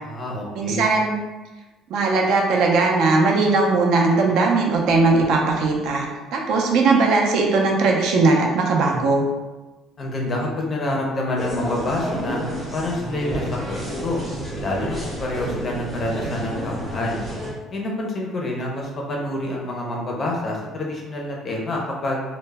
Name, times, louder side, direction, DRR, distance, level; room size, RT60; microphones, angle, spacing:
voice 1, 0.0-0.8 10.0-12.4 12.7-14.2 14.6-17.2 17.7-22.2, left 1 dB, 25° left, -2 dB, 0.5 m, -27 dB
voice 2, 0.5-1.2 1.9-9.2, right 3 dB, 60° right, 0 dB, 0.5 m, -19 dB
sound 1, 11.4-17.5, equal, 10° right, 0.8 m, -30 dB
2.1 x 2.0 x 3.3 m, 1.2 s
cardioid pair, 170°, 0 cm